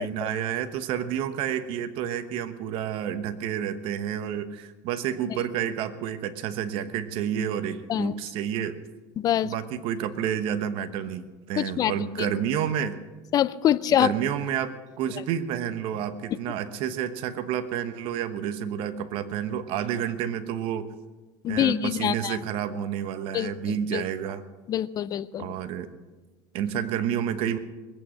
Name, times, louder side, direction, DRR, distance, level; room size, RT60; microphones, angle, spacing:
voice 1, 0.0-8.8 9.4-13.0 14.0-20.9 21.5-24.4 25.4-25.9 26.5-27.6, right 9 dB, 60° right, 11 dB, 1.2 m, -30 dB
voice 2, 9.2-9.5 11.6-12.3 13.3-14.1 21.4-22.4 23.3-24.0 24.7-25.5, left 11 dB, 35° left, 17 dB, 0.5 m, -25 dB
20.5 x 8.8 x 6.4 m, 1.3 s
supercardioid pair, 120°, 10 cm